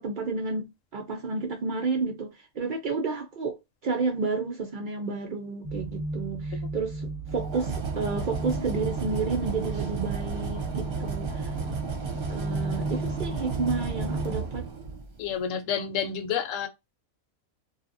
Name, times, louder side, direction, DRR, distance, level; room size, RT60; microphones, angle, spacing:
voice 1, 0.0-11.5 12.3-14.7, right 4 dB, 70° right, 0.4 m, -31 dB
sound 1, 5.6-14.4, right 2 dB, 15° right, 0.7 m, -34 dB
sound 2, 7.3-15.2, right 5 dB, 50° right, 0.8 m, -34 dB
voice 2, 15.2-16.7, left 7 dB, 75° left, 1.0 m, -29 dB
2.7 x 2.3 x 2.5 m
omnidirectional pair, 1.4 m